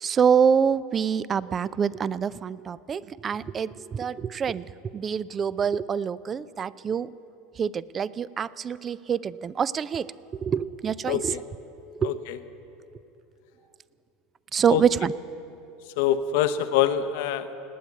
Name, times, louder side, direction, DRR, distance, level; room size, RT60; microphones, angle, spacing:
voice 1, 0.0-4.7 4.9-7.1 7.6-10.1 10.4-11.3 12.0-12.1 14.5-15.1, right 7 dB, 30° right, 19 dB, 0.4 m, -25 dB
voice 2, 11.0-11.4 12.0-12.4 14.7-14.8 16.0-17.5, left 10 dB, 65° left, 11 dB, 0.7 m, -25 dB
19.0 x 9.0 x 8.4 m, 2.8 s
hypercardioid pair, 75°, 0 cm